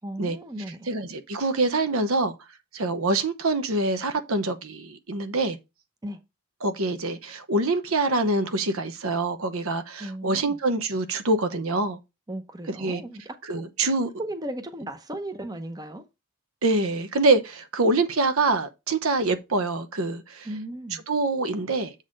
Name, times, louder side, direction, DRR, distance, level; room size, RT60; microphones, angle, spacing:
voice 1, 0.0-0.9 6.0-6.2 10.0-10.6 12.3-13.6 14.1-16.0 20.4-21.0, right 1 dB, 15° right, 0.7 m, -36 dB
voice 2, 0.9-2.3 2.7-5.6 6.6-12.0 12.8-13.0 13.5-14.1 16.6-20.5 21.1-21.9, right 2 dB, 70° right, 0.9 m, -25 dB
7.5 x 4.1 x 5.1 m
head